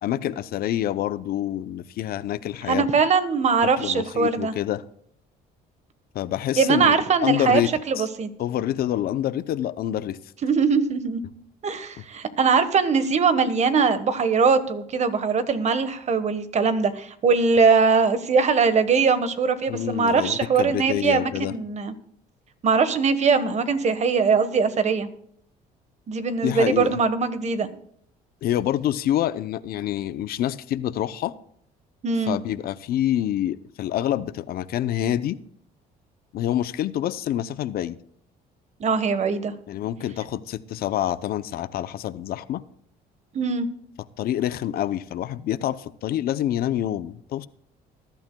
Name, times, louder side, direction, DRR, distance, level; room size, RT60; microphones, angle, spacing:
voice 1, 0.0-2.9 3.6-4.8 6.1-7.7 8.0-8.1 8.4-10.2 19.7-21.6 26.4-27.0 28.4-31.3 32.3-35.4 36.3-38.0 39.7-42.6 44.2-47.5, left 12 dB, 65° left, 0.6 m, -27 dB
voice 2, 2.7-4.5 6.6-7.6 7.9-8.3 10.4-11.2 11.6-21.9 22.6-25.1 26.1-27.7 32.0-32.4 38.8-39.5 43.3-43.7, right 5 dB, 45° right, 1.3 m, -21 dB
20.0 x 11.5 x 2.3 m
cardioid pair, 110°, 17 cm